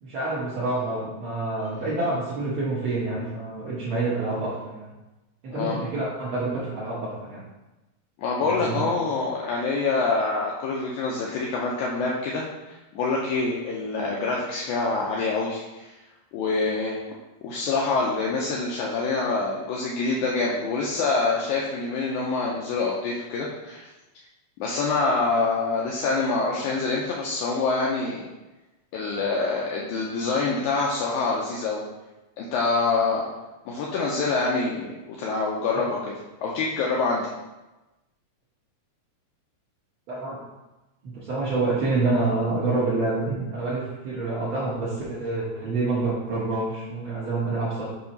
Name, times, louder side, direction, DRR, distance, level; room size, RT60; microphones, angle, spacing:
voice 1, 0.0-4.9 5.4-7.4 8.4-8.8 35.7-35.8 40.1-40.4 41.0-47.8, right 3 dB, 75° right, -8 dB, 1.2 m, -27 dB
voice 2, 8.2-15.9 16.3-17.0 17.4-23.9 24.6-28.2 28.9-31.8 32.4-33.2 33.7-36.0 36.4-37.3, left 3 dB, 80° left, -3 dB, 1.8 m, -26 dB
7.0 x 2.9 x 5.3 m, 1.1 s
omnidirectional pair, 4.0 m